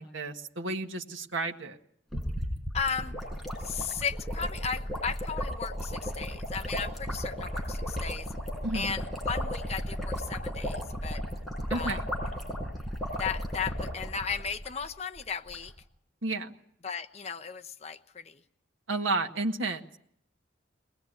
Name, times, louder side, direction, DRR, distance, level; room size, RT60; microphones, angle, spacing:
voice 1, 0.0-1.8 8.6-9.0 11.7-12.1 16.2-16.5 18.9-19.8, right 2 dB, 80° right, 3 dB, 1.7 m, -32 dB
sound 1, 2.1-14.9 15.2-15.3 15.5-15.7, equal, ahead, 5.5 m, -34 dB
voice 2, 2.7-3.2 3.6-8.3 8.7-11.2 11.7-12.0 13.2-15.7 16.8-18.4, left 6 dB, 35° left, 8 dB, 1.0 m, -35 dB
22.5 x 20.0 x 9.2 m, 0.69 s
head